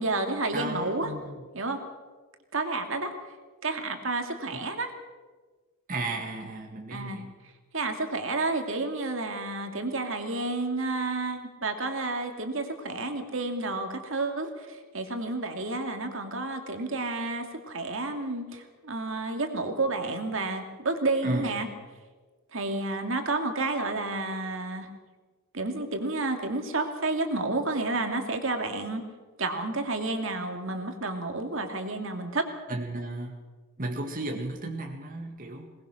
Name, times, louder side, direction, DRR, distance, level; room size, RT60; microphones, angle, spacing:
voice 1, 0.0-1.1 1.5-1.8 2.5-3.1 3.6-4.9 6.9-7.2 7.7-21.7 22.5-24.9 25.5-29.0 29.4-32.5, right 2 dB, 60° right, 5 dB, 2.4 m, -30 dB
voice 2, 0.5-1.4 4.5-4.6 5.9-7.3 21.2-21.6 32.7-33.4 33.8-35.7, right 2 dB, 40° right, 1 dB, 2.0 m, -34 dB
21.5 x 20.0 x 6.4 m, 1.4 s
head